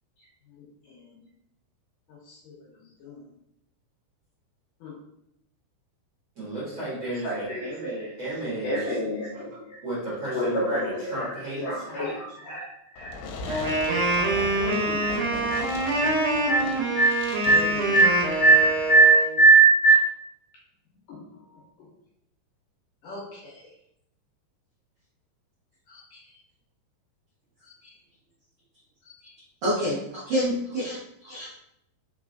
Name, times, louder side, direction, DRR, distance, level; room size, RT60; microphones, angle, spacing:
voice 1, 0.6-1.3 2.1-3.2 4.8-5.0 7.2-8.1 8.6-9.8 10.3-13.7 13.9-14.1 14.4-15.7 16.0-16.2 16.5-16.7 16.9-20.1 21.1-21.2 21.5-21.6 23.0-23.7 25.9-26.4 27.6-27.9 29.0-29.3, right 3 dB, 75° left, -5 dB, 2.1 m, -24 dB
voice 2, 6.4-7.5 8.2-8.8 9.8-12.2, right 1 dB, 40° right, -10 dB, 1.8 m, -33 dB
voice 3, 7.6-8.2 29.6-31.5, equal, 80° right, -8 dB, 1.3 m, -29 dB
Fireworks, 13.0-19.0, left 3 dB, 90° left, 2.7 m, -39 dB
Wind instrument woodwind instrument, 13.5-19.3, right 2 dB, 65° right, 2.2 m, -26 dB
5.4 x 3.8 x 2.5 m, 0.79 s
omnidirectional pair, 4.7 m